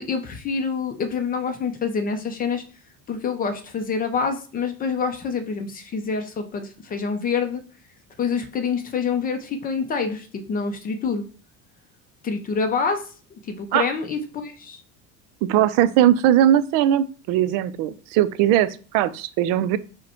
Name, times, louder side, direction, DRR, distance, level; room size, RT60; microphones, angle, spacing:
voice 1, 0.0-2.6 3.1-7.6 8.2-11.2 12.2-13.1 13.5-14.8, left 5 dB, 25° left, 7 dB, 0.5 m, -26 dB
voice 2, 15.5-19.8, right 11 dB, 65° right, 15 dB, 0.5 m, -19 dB
5.0 x 2.2 x 4.3 m, 0.39 s
cardioid pair, 140°, 36 cm